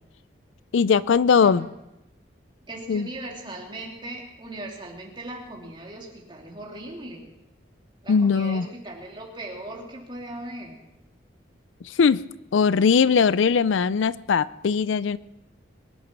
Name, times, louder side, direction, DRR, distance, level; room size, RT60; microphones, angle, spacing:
voice 1, 0.7-1.7 2.9-3.1 8.1-8.7 11.8-12.2 12.5-15.2, left 6 dB, 85° left, 18 dB, 0.4 m, -20 dB
voice 2, 2.7-7.2 8.0-10.7, right 1 dB, 25° right, -1 dB, 2.9 m, -38 dB
22.0 x 9.5 x 6.1 m, 0.93 s
head